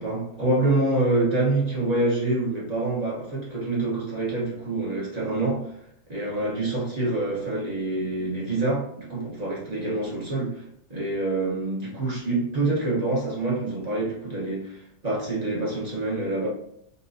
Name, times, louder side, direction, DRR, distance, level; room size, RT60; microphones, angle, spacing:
voice 1, 0.0-5.7 6.1-10.6 10.9-16.5, right 2 dB, 30° right, -5 dB, 0.7 m, -26 dB
5.5 x 2.6 x 2.7 m, 0.72 s
omnidirectional pair, 2.1 m